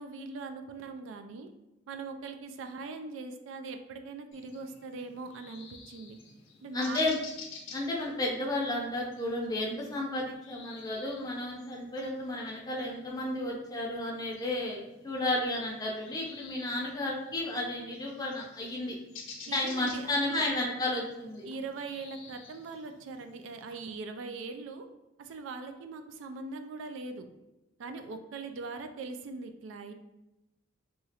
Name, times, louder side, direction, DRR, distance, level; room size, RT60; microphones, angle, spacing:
voice 1, 0.0-1.5 1.9-6.2 6.6-7.1 19.5-20.4 21.5-24.9 25.2-27.3 27.8-29.9, right 4 dB, 80° right, 6 dB, 0.3 m, -41 dB
sound 1, 4.3-23.8, left 5 dB, 85° left, 0.5 m, -52 dB
voice 2, 6.7-7.2 7.7-18.9 19.5-21.5, left 1 dB, 20° left, -2 dB, 0.5 m, -32 dB
2.9 x 2.3 x 2.8 m, 0.96 s
head